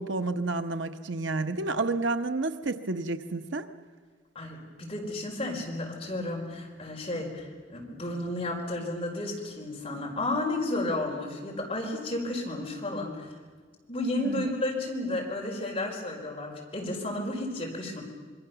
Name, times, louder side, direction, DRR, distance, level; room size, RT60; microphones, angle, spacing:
voice 1, 0.0-3.7 14.2-14.5, right 3 dB, 80° right, 8 dB, 1.1 m, -30 dB
voice 2, 4.3-13.3 13.9-18.0, left 1 dB, 30° left, -1 dB, 4.9 m, -32 dB
27.0 x 22.5 x 7.0 m, 1.5 s
head